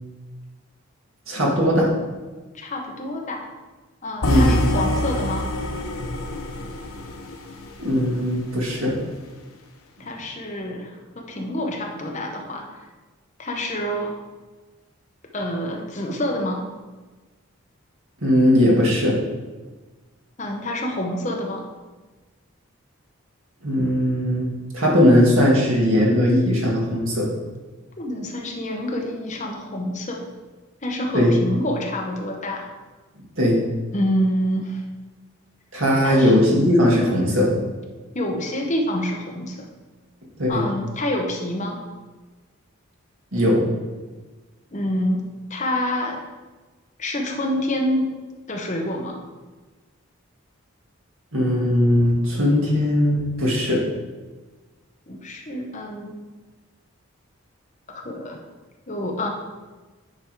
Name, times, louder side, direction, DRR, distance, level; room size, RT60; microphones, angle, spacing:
voice 1, 1.3-1.9 4.3-4.5 7.8-8.9 18.2-19.2 23.6-24.5 24.7-27.3 31.1-31.3 33.4-33.6 35.7-37.5 40.4-40.6 43.3-43.6 51.3-53.8, left 1 dB, 65° right, -3 dB, 2.0 m, -19 dB
voice 2, 2.5-3.4 4.0-5.5 10.0-12.8 13.4-14.1 15.3-16.7 20.4-21.7 28.0-30.2 30.8-32.7 33.9-34.8 36.0-36.3 38.1-39.7 40.5-41.8 44.7-45.2 45.5-46.2 47.0-48.1 48.5-49.2 55.1-56.1 57.9-58.4 58.9-59.3, left 1 dB, 35° left, 1 dB, 0.9 m, -27 dB
sound 1, 4.2-8.3, equal, 75° left, 0.9 m, -25 dB
9.6 x 3.5 x 4.7 m, 1.3 s
head